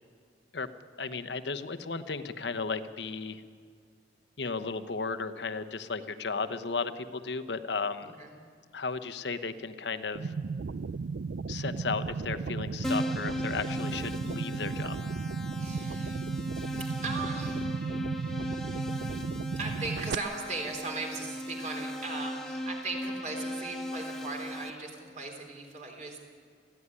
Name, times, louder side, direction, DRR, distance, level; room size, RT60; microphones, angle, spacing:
voice 1, 1.0-3.4 4.4-8.1 8.7-10.3 11.5-15.0, left 4 dB, 70° left, 10 dB, 1.0 m, -34 dB
sound 1, 10.2-20.2, right 4 dB, 70° right, 0.5 m, -35 dB
Keyboard (musical), 12.8-24.7, left 1 dB, 5° left, 1.2 m, -37 dB
voice 2, 15.6-16.3 16.7-17.7 19.5-26.2, right 3 dB, 40° right, 2 dB, 3.6 m, -38 dB
21.0 x 15.0 x 9.9 m, 2.1 s
head